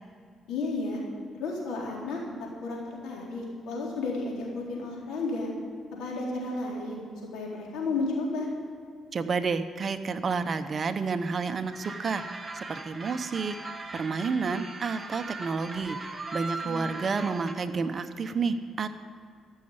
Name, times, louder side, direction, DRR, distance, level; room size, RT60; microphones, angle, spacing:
voice 1, 0.5-1.0 1.4-2.2 2.6-5.5 5.9-7.0 7.3-8.5 16.6-16.9, left 3 dB, 85° left, -3 dB, 4.0 m, -32 dB
voice 2, 9.1-12.2 12.7-13.6 13.9-16.0 16.3-18.9, right 4 dB, 45° right, 9 dB, 0.9 m, -30 dB
sound 1, 11.7-17.5, right 3 dB, 20° right, 1.6 m, -39 dB
14.5 x 6.5 x 9.6 m, 2.2 s
cardioid pair, 90°, 0 cm